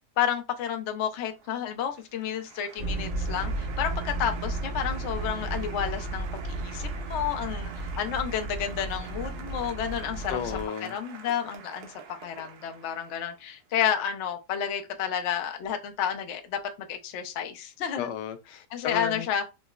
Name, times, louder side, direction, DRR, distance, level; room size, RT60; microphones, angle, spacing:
voice 1, 0.2-10.4 10.8-11.9 12.2-18.1 18.7-19.6, left 9 dB, 60° left, 0.7 m, -31 dB
Applause, 1.1-13.6, right 7 dB, 70° right, 1.2 m, -46 dB
sound 1, 2.8-10.7, right 2 dB, 30° right, 0.9 m, -33 dB
voice 2, 10.3-11.0 18.0-19.3, left 8 dB, 85° left, 1.2 m, -33 dB
5.5 x 2.0 x 2.3 m
omnidirectional pair, 1.8 m